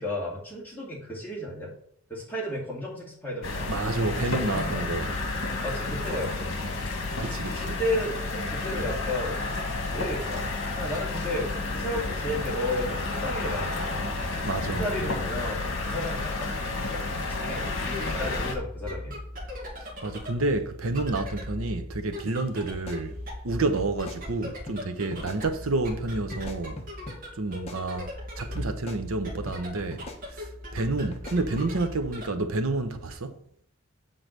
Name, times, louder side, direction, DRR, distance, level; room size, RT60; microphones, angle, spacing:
voice 1, 0.0-1.7 2.1-5.0 5.6-6.6 7.6-9.6 9.9-10.5 10.8-14.1 14.6-19.1, left 1 dB, 10° left, 2.5 m, -33 dB
sound 1, 3.4-18.6, left 3 dB, 60° left, 1.7 m, -31 dB
voice 2, 3.7-5.1 7.2-7.8 14.4-14.9 19.8-23.2 23.4-26.8 27.4-30.0 30.3-33.3, right 2 dB, 75° right, 0.8 m, -29 dB
sound 2, 17.4-33.1, left 1 dB, 40° right, 2.0 m, -39 dB
sound 3, 22.3-22.4 22.7-23.5 23.8-24.2 24.7-24.8 25.1-25.4 26.3-27.2 27.5-28.2 28.6-29.0 29.5-29.6 29.9-30.2 31.1-31.7, left 1 dB, 30° left, 1.1 m, -42 dB
7.7 x 3.8 x 6.7 m
head